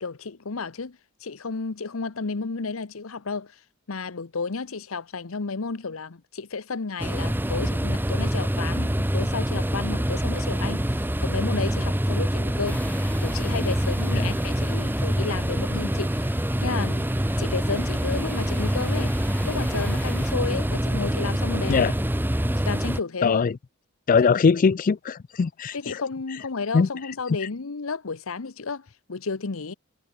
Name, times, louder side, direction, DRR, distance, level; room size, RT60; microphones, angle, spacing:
voice 1, 0.0-3.5 3.9-12.8 13.2-16.3 16.6-17.1 17.4-19.1 19.4-21.9 22.7-23.4 25.7-29.7, left 4 dB, 85° left, 0.9 m, -32 dB
sound 1, 7.0-23.0, equal, 10° right, 1.3 m, -25 dB
sound 2, 12.7-20.3, left 1 dB, 5° left, 3.9 m, -43 dB
voice 2, 23.2-23.6 24.1-26.0 26.7-26.9, left 5 dB, 40° left, 0.4 m, -21 dB
head